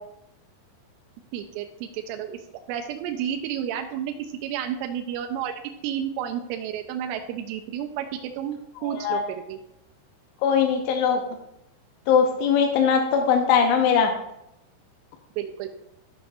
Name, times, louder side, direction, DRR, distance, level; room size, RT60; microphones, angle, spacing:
voice 1, 1.3-2.4 2.7-9.6 15.4-15.7, right 9 dB, 90° right, 3 dB, 3.2 m, -31 dB
voice 2, 8.9-9.2 10.4-11.2 12.1-14.1, left 7 dB, 85° left, 3 dB, 2.8 m, -20 dB
14.0 x 5.9 x 2.5 m, 0.82 s
omnidirectional pair, 5.8 m